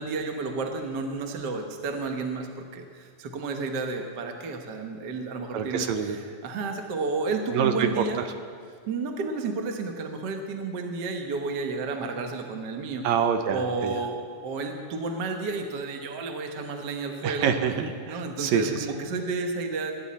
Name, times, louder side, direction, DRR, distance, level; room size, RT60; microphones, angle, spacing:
voice 1, 0.0-8.2 8.9-13.1 13.5-17.5 18.1-19.9, right 4 dB, 60° right, 4 dB, 1.1 m, -31 dB
voice 2, 5.5-6.2 7.5-8.0 13.0-14.0 17.2-18.9, right 7 dB, 75° right, 7 dB, 2.0 m, -26 dB
21.0 x 9.8 x 4.2 m, 2.1 s
omnidirectional pair, 3.4 m